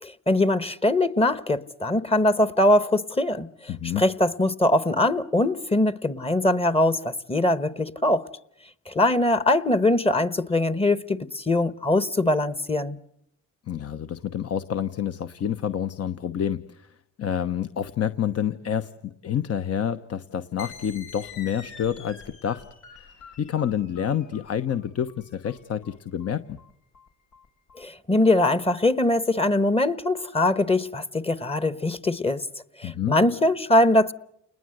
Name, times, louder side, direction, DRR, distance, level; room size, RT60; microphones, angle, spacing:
voice 1, 0.0-3.5 4.0-8.3 8.9-13.0 27.8-32.4 32.8-34.1, left 1 dB, 20° left, 1.1 m, -22 dB
voice 2, 3.7-4.0 13.7-22.6 22.9-26.6 32.8-33.2, left 9 dB, 55° left, 1.1 m, -28 dB
sound 1, 20.6-27.8, left 6 dB, 85° left, 4.9 m, -46 dB
29.5 x 20.5 x 7.8 m
cardioid pair, 90°, 30 cm